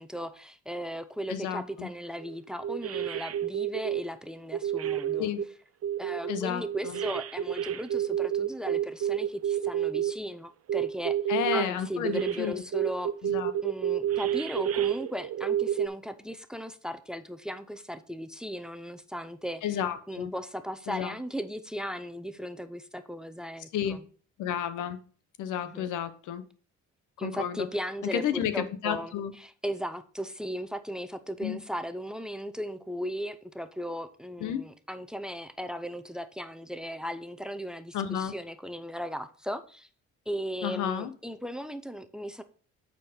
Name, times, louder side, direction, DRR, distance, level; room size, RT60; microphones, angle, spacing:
voice 1, 0.0-5.3 6.0-11.2 11.5-13.1 13.6-24.0 25.5-25.9 27.2-39.9 40.3-42.4, equal, ahead, 0.6 m, -37 dB
voice 2, 1.3-1.9 5.2-5.4 6.3-7.0 11.3-12.6 13.2-13.5 19.6-20.3 20.9-21.1 23.7-24.0 24.4-25.0 25.4-26.4 27.2-27.7 28.1-29.3 31.4-31.6 34.4-34.6 37.9-38.3 40.6-41.1, left 9 dB, 90° left, 0.9 m, -31 dB
sound 1, 2.2-2.3 2.6-4.0 4.5-5.4 5.8-10.1 10.7-11.6 12.0-12.4 12.7-15.9, right 10 dB, 50° right, 0.6 m, -29 dB
8.1 x 4.5 x 5.0 m
cardioid pair, 90°, 30 cm